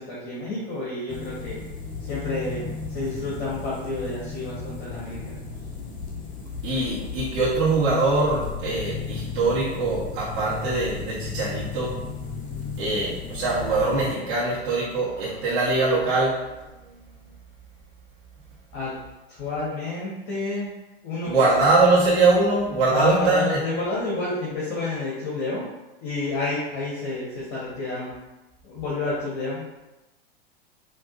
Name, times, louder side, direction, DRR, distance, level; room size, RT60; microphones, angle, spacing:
voice 1, 0.0-1.6 2.0-2.6 2.9-5.4 18.7-18.9 19.3-20.7 21.0-21.4 22.9-25.7 26.0-28.2 28.6-29.6, left 3 dB, 45° left, -7 dB, 1.3 m, -30 dB
sound 1, 1.1-14.1, left 5 dB, 25° left, 0.8 m, -35 dB
voice 2, 6.6-11.9 12.8-16.4 21.3-23.6, right 3 dB, 55° right, -8 dB, 1.4 m, -22 dB
5.2 x 2.8 x 2.6 m, 1.0 s
figure-of-eight pair, 90°, 31 cm